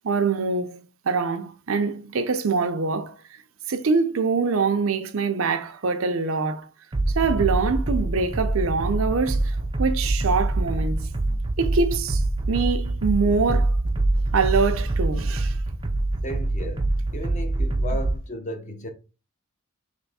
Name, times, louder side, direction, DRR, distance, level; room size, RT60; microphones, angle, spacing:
voice 1, 0.0-0.8 1.1-3.1 3.7-6.7 7.1-12.2 12.5-13.7 14.3-15.5, right 4 dB, 70° right, 0.6 m, -24 dB
sound 1, 6.9-18.2, right 2 dB, 20° right, 0.4 m, -25 dB
voice 2, 16.2-18.9, equal, 35° left, 0.7 m, -35 dB
3.4 x 3.0 x 4.1 m
head